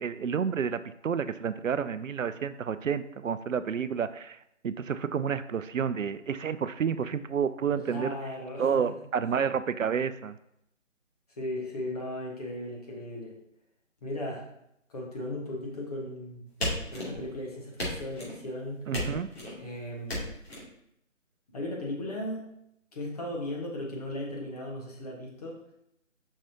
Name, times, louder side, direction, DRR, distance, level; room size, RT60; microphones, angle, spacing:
voice 1, 0.0-4.4 4.6-8.1 8.6-10.4 18.9-19.3, right 7 dB, 75° right, 13 dB, 0.5 m, -30 dB
voice 2, 7.8-8.8 9.2-9.3 11.4-13.4 14.0-14.5 14.9-16.4 16.9-18.8 19.6-20.3 21.5-22.5 22.9-25.6, left 1 dB, 30° left, -3 dB, 1.4 m, -36 dB
sound 1, 16.6-17.4 17.8-18.4 18.9-19.6 20.1-20.6, left 1 dB, 50° left, 2.7 m, -34 dB
7.2 x 5.5 x 2.8 m, 0.76 s
figure-of-eight pair, 155°, 39 cm